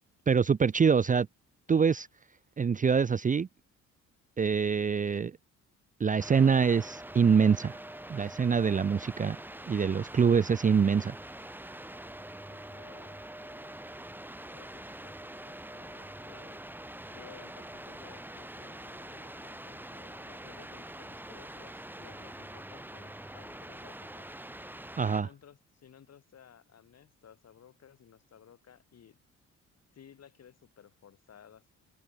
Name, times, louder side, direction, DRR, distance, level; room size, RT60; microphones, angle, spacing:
voice 1, 0.3-1.3 1.7-2.1 2.6-3.5 4.4-5.3 6.0-7.8 8.1-9.4 9.7-11.1 25.0-25.3, right 6 dB, 25° right, 0.6 m, -25 dB
voice 2, 1.7-2.1 12.5-13.8 14.5-15.1 15.5-16.6 17.1-24.5 25.1-29.2 29.9-31.7, left 8 dB, 55° left, 7.9 m, -57 dB
sound 1, 6.2-25.2, right 1 dB, 5° right, 3.8 m, -45 dB
cardioid pair, 90°, 30 cm